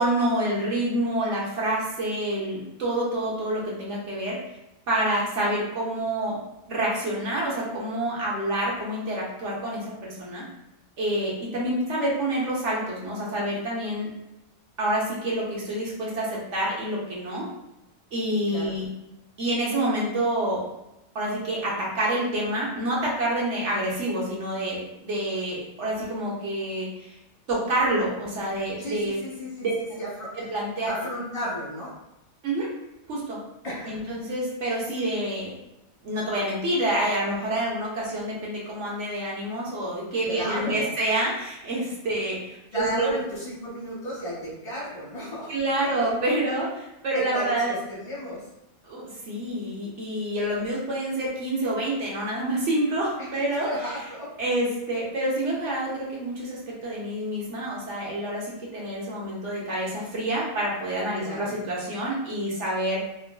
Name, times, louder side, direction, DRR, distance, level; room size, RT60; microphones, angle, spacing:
voice 1, 0.0-4.4 4.9-6.4 6.7-10.4 11.0-14.1 14.8-17.5 18.1-18.9 19.4-20.6 21.1-27.1 27.5-29.2 29.6-29.7 30.5-30.9 32.4-32.7 33.1-33.4 33.9-35.5 36.0-43.1 45.5-46.7 47.0-47.7 48.8-53.7 54.4-63.0, right 1 dB, 55° right, -5 dB, 1.3 m, -27 dB
voice 2, 28.8-30.3 30.9-31.9 33.6-34.0 40.2-40.9 42.7-45.5 45.8-46.6 47.1-48.4 53.2-54.3 61.2-61.5, equal, 40° left, -7 dB, 1.8 m, -34 dB
3.8 x 2.8 x 2.2 m, 0.90 s
omnidirectional pair, 1.5 m